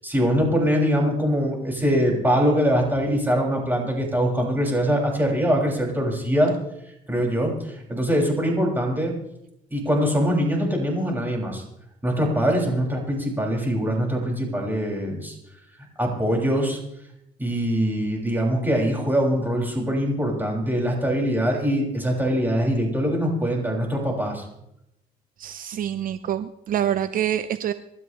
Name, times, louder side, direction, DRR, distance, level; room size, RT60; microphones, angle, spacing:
voice 1, 0.0-6.5 6.8-9.1 9.7-11.6 12.0-15.3 16.0-16.8 17.4-24.5, equal, 10° right, -1 dB, 6.7 m, -23 dB
voice 2, 25.4-27.7, right 10 dB, 55° right, 12 dB, 0.7 m, -26 dB
28.0 x 12.5 x 3.4 m, 0.81 s
cardioid pair, 110°, 17 cm